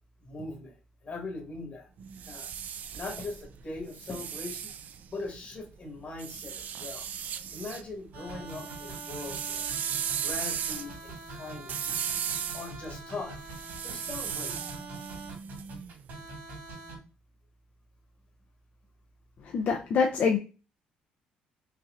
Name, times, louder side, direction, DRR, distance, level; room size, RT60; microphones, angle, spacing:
voice 1, 0.2-0.7 1.0-1.9 2.3-2.5 2.9-4.7 5.1-7.1 7.5-9.7 10.2-11.9 12.5-13.3 13.8-14.5, left 3 dB, 40° left, 0 dB, 1.6 m, -40 dB
sound 1, 2.0-5.5 6.2-7.8 8.2-16.1, right 8 dB, 55° right, 0.4 m, -36 dB
sound 2, 8.1-17.0, right 2 dB, 75° right, 2.2 m, -43 dB
voice 2, 19.5-20.4, left 5 dB, 60° left, 3 dB, 0.6 m, -25 dB
5.4 x 2.8 x 2.5 m, 0.33 s
supercardioid pair, 80°, 3 cm